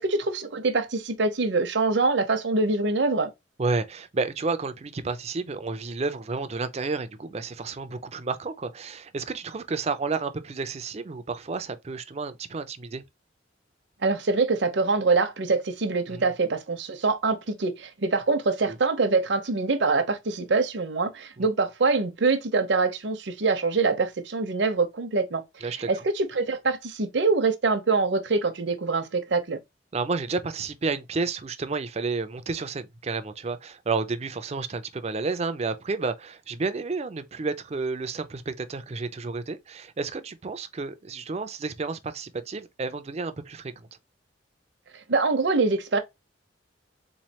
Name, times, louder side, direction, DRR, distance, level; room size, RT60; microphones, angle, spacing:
voice 1, 0.0-3.3 14.0-25.4 25.7-29.6 45.1-46.0, right 3 dB, 65° right, 0.7 m, -24 dB
voice 2, 3.6-13.0 16.1-16.3 18.7-18.8 21.4-21.5 25.6-25.9 29.9-43.9, right 4 dB, 35° right, 0.4 m, -31 dB
3.9 x 3.1 x 2.8 m
head